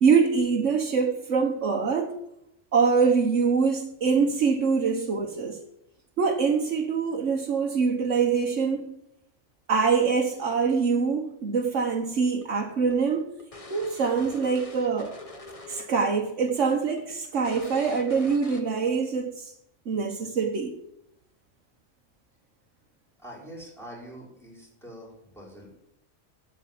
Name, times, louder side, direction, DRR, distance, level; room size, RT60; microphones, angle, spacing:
voice 1, 0.0-2.1 2.7-5.6 6.2-8.9 9.7-13.3 13.7-15.1 15.7-19.5 19.9-20.7, right 5 dB, 70° right, 0 dB, 1.4 m, -24 dB
sound 1, 12.4-16.0 16.3-16.5 17.0-17.1 17.4-18.9, left 3 dB, 30° left, 1.4 m, -45 dB
voice 2, 23.2-25.9, equal, ahead, -4 dB, 5.2 m, -45 dB
12.5 x 8.2 x 7.6 m, 0.81 s
omnidirectional pair, 1.3 m